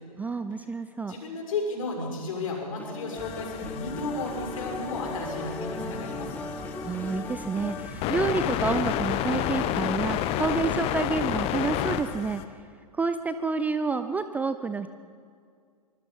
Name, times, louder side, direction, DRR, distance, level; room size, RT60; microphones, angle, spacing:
voice 1, 0.2-1.2 6.8-12.4 12.9-14.9, right 4 dB, 10° right, 11 dB, 0.5 m, -29 dB
voice 2, 1.1-6.4, left 3 dB, 55° left, 0 dB, 6.6 m, -33 dB
sound 1, 2.8-7.9, left 2 dB, 5° left, 1.1 m, -37 dB
sound 2, 3.2-12.4, left 11 dB, 30° left, 1.2 m, -31 dB
sound 3, 3.6-10.6, right 3 dB, 35° right, 7.7 m, -47 dB
25.0 x 21.0 x 5.4 m, 2.2 s
figure-of-eight pair, 110°, 20 cm